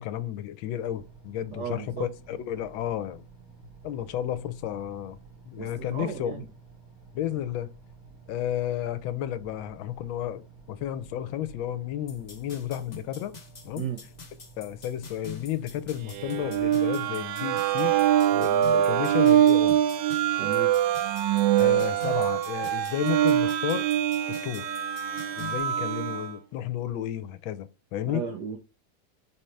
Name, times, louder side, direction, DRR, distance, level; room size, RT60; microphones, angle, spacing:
voice 1, 0.0-3.3 3.8-5.2 5.5-6.5 7.1-7.7 8.3-13.4 13.6-13.8 14.6-18.0 18.3-19.8 21.6-23.9 24.3-24.7 25.4-28.2, left 11 dB, 80° left, 1.4 m, -32 dB
sound 1, 0.7-16.8, right 4 dB, 25° left, 3.0 m, -51 dB
voice 2, 1.5-2.1 5.6-6.4 13.7-14.0 20.4-20.7 28.0-28.6, right 7 dB, 65° right, 1.1 m, -34 dB
sound 2, 12.1-25.6, left 6 dB, 50° left, 0.5 m, -45 dB
sound 3, 16.1-26.3, right 11 dB, 90° right, 1.4 m, -24 dB
4.3 x 3.9 x 3.2 m
omnidirectional pair, 2.2 m